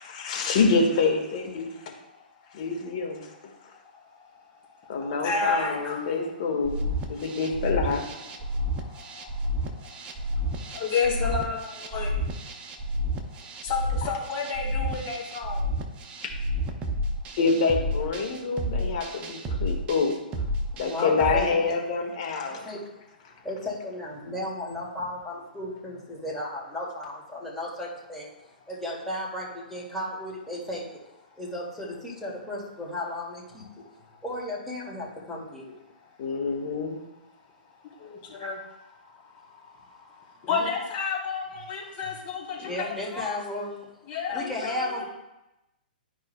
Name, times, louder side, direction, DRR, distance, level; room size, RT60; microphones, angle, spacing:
voice 1, 0.0-1.7 2.5-3.3 4.9-8.0 17.4-20.2 20.8-22.7 36.2-37.0, left 4 dB, 45° left, 1 dB, 1.6 m, -26 dB
voice 2, 5.0-6.1 8.3-9.9 10.2-12.1 13.6-15.7 21.0-21.3 38.0-38.6 39.0-39.1 39.4-43.4 44.1-45.0, left 5 dB, 30° left, -4 dB, 2.6 m, -31 dB
sound 1, 6.6-21.4, equal, 20° right, 0.8 m, -30 dB
voice 3, 20.7-21.8 22.4-23.0 23.4-30.8 31.4-33.7 34.2-35.7 40.5-40.7 41.5-41.7 42.6-43.8 44.3-45.0, left 1 dB, 5° left, -6 dB, 2.2 m, -35 dB
12.5 x 4.9 x 2.2 m, 0.93 s
figure-of-eight pair, 115°, 5 cm